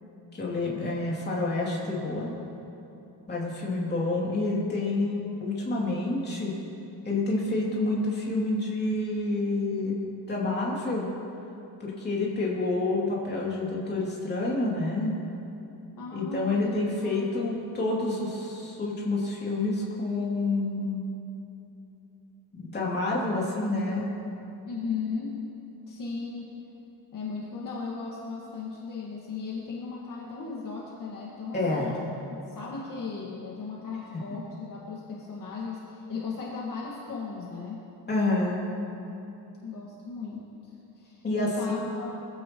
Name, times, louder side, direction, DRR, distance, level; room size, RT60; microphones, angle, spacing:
voice 1, 0.3-2.3 3.3-6.5 7.0-10.0 10.3-11.1 11.8-15.1 16.1-21.0 22.6-24.1 31.5-31.9 38.1-38.6 41.2-41.9, left 2 dB, 25° left, -5 dB, 2.8 m, -28 dB
voice 2, 16.0-16.7 17.0-17.6 24.7-25.4 25.9-26.5 27.1-32.0 32.5-37.8 39.6-42.1, left 5 dB, 50° left, -4 dB, 1.9 m, -36 dB
22.5 x 15.0 x 3.1 m, 2.9 s
cardioid pair, 180°, 41 cm